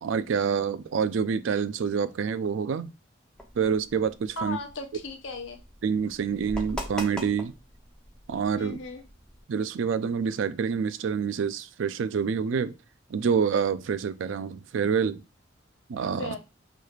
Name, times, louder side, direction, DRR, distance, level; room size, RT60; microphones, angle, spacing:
voice 1, 0.0-2.9 3.6-4.6 5.8-7.5 8.3-8.8 9.5-12.7 13.1-15.2 15.9-16.4, right 6 dB, 85° right, 0.4 m, -27 dB
sound 1, 3.3-9.4, equal, 5° left, 0.7 m, -42 dB
voice 2, 4.4-5.6 8.6-9.0 16.2-16.4, left 2 dB, 85° left, 0.8 m, -36 dB
4.7 x 3.2 x 2.4 m
head